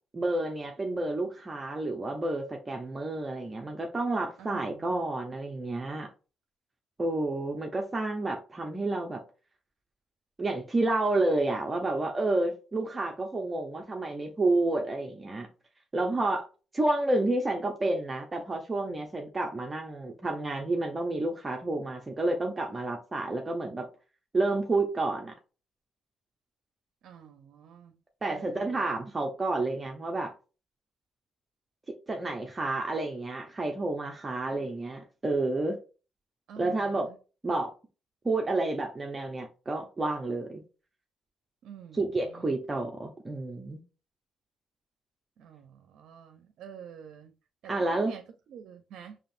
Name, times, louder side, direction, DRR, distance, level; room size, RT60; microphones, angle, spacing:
voice 1, 0.1-6.1 7.0-9.2 10.4-15.5 15.9-16.5 16.7-23.9 24.3-25.3 28.2-30.3 32.1-35.8 36.6-37.1 37.4-37.7 38.2-40.6 41.9-43.8 47.7-48.1, right 2 dB, 25° right, 0.7 m, -30 dB
voice 2, 4.4-4.9 27.0-28.0 28.3-28.9 36.5-37.2 41.6-42.6 45.4-47.3 47.6-48.2 48.5-49.2, right 8 dB, 75° right, 0.5 m, -47 dB
5.0 x 2.8 x 2.6 m
cardioid pair, 90°, 0 cm